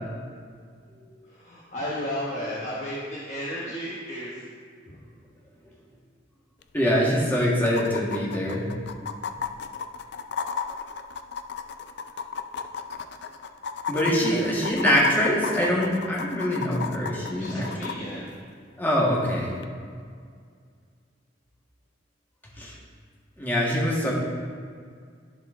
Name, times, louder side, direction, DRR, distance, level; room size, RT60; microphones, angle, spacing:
voice 1, 1.3-4.4 4.9-5.0 14.3-14.4 17.4-18.3, equal, 40° left, -7 dB, 1.1 m, -33 dB
sound 1, 6.6-6.7 6.9-7.0 7.7-18.0 19.6-19.7, left 6 dB, 60° left, 0.4 m, -33 dB
voice 2, 6.7-8.7 13.9-18.0 18.8-19.5 22.6-22.7 23.4-24.1, equal, 10° left, -5 dB, 1.6 m, -24 dB
13.0 x 4.4 x 3.7 m, 2.1 s
head